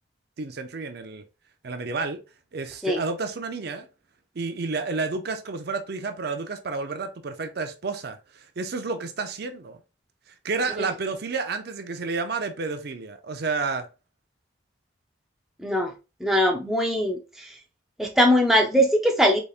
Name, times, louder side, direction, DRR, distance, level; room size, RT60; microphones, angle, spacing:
voice 1, 0.4-1.2 1.6-2.2 2.5-3.9 4.4-9.8 10.3-13.9, right 4 dB, 55° right, 0.5 m, -30 dB
voice 2, 15.6-15.9 16.2-17.5 18.0-19.4, equal, ahead, 0.6 m, -21 dB
4.0 x 3.4 x 2.4 m
head